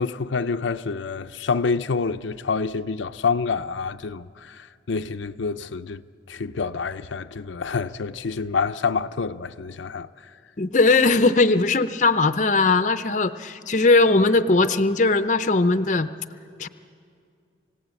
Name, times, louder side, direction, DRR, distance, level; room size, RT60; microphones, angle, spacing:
voice 1, 0.0-6.0 6.3-10.1, left 5 dB, 90° left, 0.5 m, -27 dB
voice 2, 10.6-16.1 16.6-16.7, left 3 dB, 40° left, 0.6 m, -19 dB
28.5 x 17.0 x 8.3 m
head